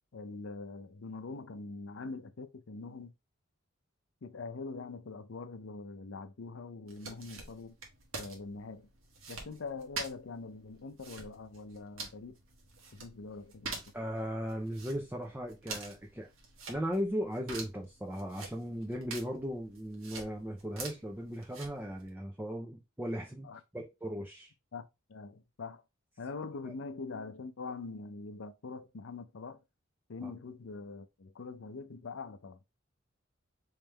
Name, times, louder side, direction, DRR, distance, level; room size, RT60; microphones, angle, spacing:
voice 1, 0.1-3.1 4.2-7.8 8.1-8.9 9.3-12.4 12.9-13.8 23.4-23.6 24.7-24.8 25.1-25.8 26.2-29.6 30.1-32.6, left 4 dB, 70° left, 0.5 m, -43 dB
sound 1, 6.9-22.1, right 4 dB, 90° right, 1.2 m, -47 dB
voice 2, 13.9-16.3 16.7-23.5 23.7-24.5 30.2-30.3, equal, 10° right, 0.5 m, -37 dB
3.5 x 3.2 x 3.3 m
head